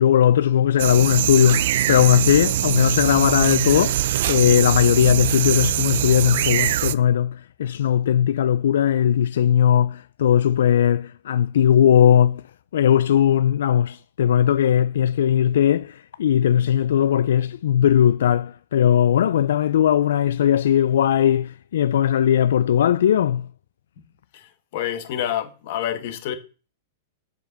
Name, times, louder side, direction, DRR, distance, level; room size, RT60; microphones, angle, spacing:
voice 1, 0.0-4.0 4.3-12.4 12.7-23.5, left 9 dB, 80° left, 0.3 m, -18 dB
sound 1, 0.8-6.9, right 13 dB, 55° right, 0.4 m, -23 dB
voice 2, 24.3-26.3, left 11 dB, 45° left, 1.2 m, -28 dB
7.7 x 5.1 x 6.6 m
supercardioid pair, 170°, 0 cm